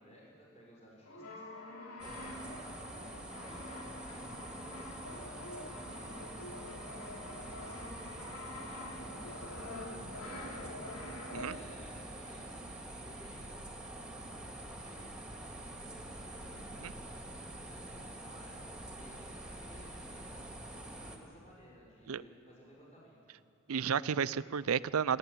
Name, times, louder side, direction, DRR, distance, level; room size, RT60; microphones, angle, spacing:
voice 1, 0.0-1.4 2.0-2.6 3.0-7.8 8.1-11.1 11.3-17.2 17.6-20.3 20.7-23.4, equal, 30° left, -5 dB, 6.5 m, -57 dB
Brass instrument, 1.0-11.9, left 1 dB, 90° left, 2.9 m, -46 dB
sound 1, 2.0-21.2, right 1 dB, 5° right, 1.9 m, -46 dB
voice 2, 23.7-25.2, right 7 dB, 75° right, 16 dB, 0.5 m, -32 dB
28.5 x 12.0 x 8.5 m, 2.3 s
head